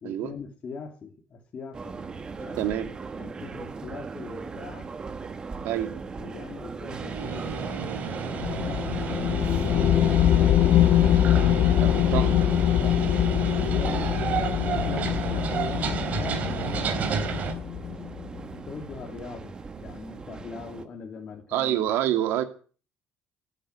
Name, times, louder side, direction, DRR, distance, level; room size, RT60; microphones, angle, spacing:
voice 1, 0.0-1.9 2.4-2.9 3.1-4.9 6.1-7.8 8.2-9.4 9.8-11.4 11.8-12.9 13.7-17.1 18.7-21.9, left 5 dB, 35° left, 2.8 m, -41 dB
sound 1, 1.7-20.9, right 4 dB, 25° right, 1.4 m, -40 dB
voice 2, 2.6-2.9 5.6-5.9 11.8-12.3 14.0-14.1 21.5-22.4, right 12 dB, 80° right, 2.5 m, -26 dB
sound 2, 6.9-17.5, right 6 dB, 45° right, 3.5 m, -31 dB
sound 3, 8.4-18.4, left 11 dB, 55° left, 1.1 m, -23 dB
16.0 x 10.0 x 9.1 m
cardioid pair, 160°, 4 cm